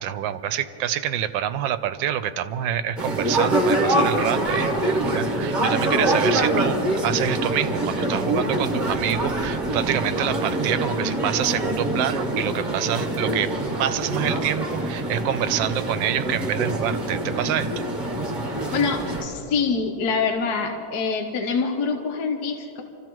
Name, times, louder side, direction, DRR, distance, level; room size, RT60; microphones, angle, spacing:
voice 1, 0.0-13.5 13.8-17.8, right 10 dB, 80° right, 12 dB, 1.3 m, -27 dB
sound 1, 3.0-19.2, right 1 dB, 25° right, 1.3 m, -25 dB
voice 2, 18.7-22.8, left 5 dB, 60° left, 4 dB, 1.3 m, -25 dB
27.5 x 14.5 x 3.1 m, 2.9 s
omnidirectional pair, 2.1 m